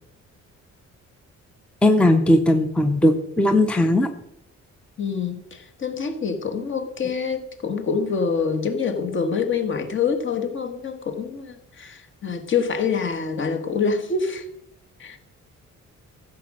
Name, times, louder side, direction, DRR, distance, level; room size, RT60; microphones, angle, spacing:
voice 1, 1.8-4.1, left 1 dB, 5° left, 0.6 m, -18 dB
voice 2, 5.0-14.5 15.0-15.2, left 5 dB, 40° left, 1.5 m, -26 dB
14.5 x 5.1 x 7.6 m
wide cardioid pair, 170°, 29 cm